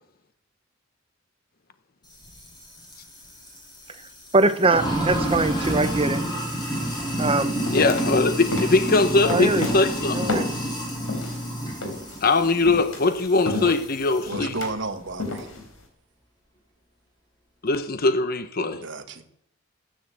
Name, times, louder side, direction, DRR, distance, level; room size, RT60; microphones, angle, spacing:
Sink (filling or washing), 2.1-14.4, right 1 dB, 20° left, 7.4 m, -30 dB
voice 1, 4.3-6.2 7.2-7.5 9.3-9.7 10.1-10.5, right 2 dB, 30° right, 1.1 m, -22 dB
sound 1, 6.8-6.9 7.2-11.4 11.8-15.8, left 2 dB, 80° left, 4.0 m, -32 dB
voice 2, 7.7-10.2 12.2-14.5 17.6-18.8, left 3 dB, 45° left, 0.9 m, -21 dB
voice 3, 14.3-15.5 18.7-19.3, right 3 dB, 60° right, 1.7 m, -32 dB
15.0 x 10.0 x 8.1 m
head